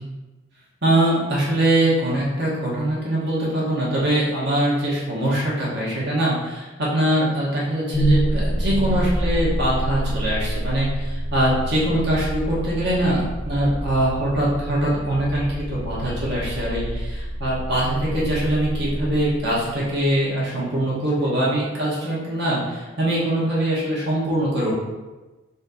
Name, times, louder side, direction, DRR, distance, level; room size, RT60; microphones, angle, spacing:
voice 1, 0.8-6.7 6.9-24.7, right 1 dB, 55° right, -6 dB, 1.5 m, -22 dB
sound 1, 7.9-20.0, right 1 dB, 35° left, 0.6 m, -27 dB
4.2 x 2.8 x 4.0 m, 1.2 s
head